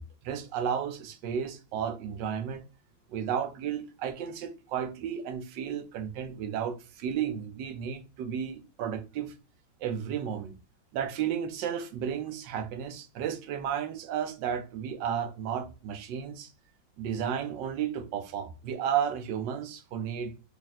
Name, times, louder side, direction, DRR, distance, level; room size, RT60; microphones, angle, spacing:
voice 1, 0.0-2.6 3.1-9.3 9.8-10.5 10.9-16.5 17.0-20.3, right 8 dB, 75° right, 1.2 m, -33 dB
3.6 x 2.4 x 4.0 m
omnidirectional pair, 2.1 m